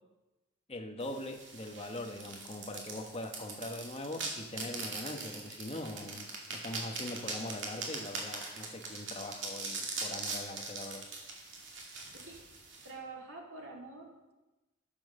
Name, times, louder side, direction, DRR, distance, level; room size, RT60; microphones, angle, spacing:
voice 1, 0.7-11.0, left 1 dB, 30° left, 4 dB, 1.0 m, -42 dB
sound 1, 1.0-12.9, right 3 dB, 60° right, 2.3 m, -41 dB
voice 2, 12.8-14.3, right 3 dB, 75° right, -1 dB, 2.5 m, -47 dB
10.5 x 7.0 x 6.5 m, 1.1 s
head